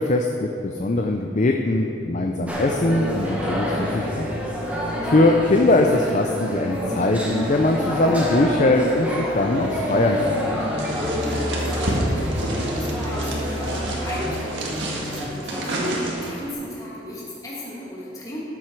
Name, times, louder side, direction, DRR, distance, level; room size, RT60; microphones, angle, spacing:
voice 1, 0.0-10.5, left 2 dB, 40° left, 3 dB, 0.5 m, -21 dB
sound 1, 2.5-15.8, equal, 10° right, 1.6 m, -27 dB
sound 2, 9.4-15.3, equal, 70° right, 1.7 m, -35 dB
sound 3, 10.8-16.5, right 1 dB, 85° right, 1.8 m, -30 dB
voice 2, 11.2-18.4, equal, 20° left, -7 dB, 2.2 m, -35 dB
13.5 x 7.5 x 4.6 m, 2.8 s
head